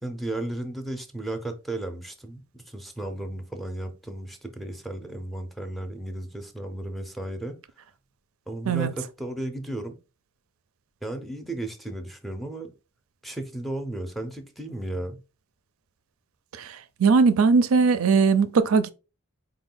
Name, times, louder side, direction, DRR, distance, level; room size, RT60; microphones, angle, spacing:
voice 1, 0.0-7.6 8.5-10.0 11.0-12.7 13.2-15.2, right 1 dB, ahead, 0.5 m, -34 dB
voice 2, 16.6-18.9, right 5 dB, 75° right, 0.5 m, -20 dB
4.3 x 2.2 x 3.8 m
head